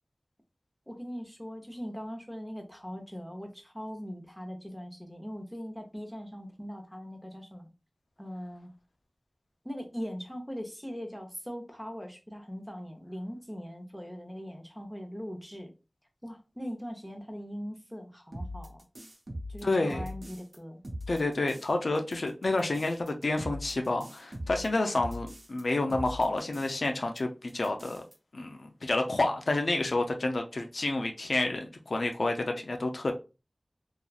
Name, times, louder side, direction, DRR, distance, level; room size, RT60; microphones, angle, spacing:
voice 1, 0.9-7.7 8.2-8.7 9.6-15.7 16.2-18.8 19.5-20.8, equal, 5° right, 0.7 m, -40 dB
sound 1, 18.3-20.6 20.8-21.7 22.0-25.6 25.9-26.9 27.2-27.3 27.5-28.1, equal, 65° right, 0.7 m, -41 dB
voice 2, 19.6-20.1 21.1-28.0 28.3-33.1, left 2 dB, 85° left, 0.4 m, -29 dB
2.9 x 2.3 x 2.3 m
wide cardioid pair, 45°, 0 cm